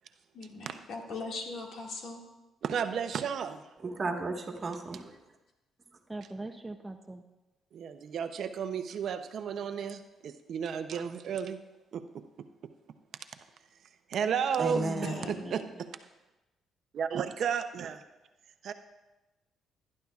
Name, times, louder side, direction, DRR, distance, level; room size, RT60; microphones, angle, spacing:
voice 1, 0.3-2.2 14.7-15.5, left 3 dB, 65° left, 1 dB, 2.0 m, -40 dB
voice 2, 2.6-3.6 7.7-11.6 11.9-12.2 12.6-12.7 14.1-14.8 15.3-15.6 16.9-18.0 18.6-18.7, right 7 dB, 65° right, 9 dB, 0.6 m, -33 dB
voice 3, 3.8-5.2 14.6-15.2, right 3 dB, 40° right, 3 dB, 1.5 m, -33 dB
voice 4, 6.1-7.2 15.1-15.8, right 2 dB, 15° right, 6 dB, 0.6 m, -42 dB
18.5 x 10.5 x 2.4 m, 1.1 s
cardioid pair, 90°, 0 cm